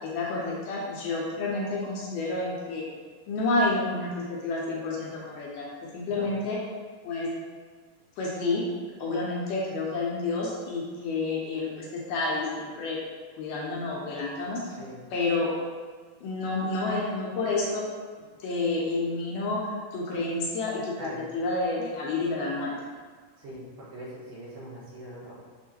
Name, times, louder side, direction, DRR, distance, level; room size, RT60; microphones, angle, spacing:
voice 1, 0.0-2.8 3.3-5.7 5.9-6.6 7.0-7.3 8.2-8.6 9.0-13.0 13.4-14.6 15.1-15.5 16.2-17.8 18.4-21.1 21.3-22.7, left 3 dB, 75° left, -4 dB, 2.1 m, -29 dB
voice 2, 14.6-15.0 21.0-21.2 23.4-25.4, equal, 80° right, -7 dB, 2.9 m, -42 dB
6.4 x 2.7 x 2.8 m, 1.5 s
omnidirectional pair, 4.1 m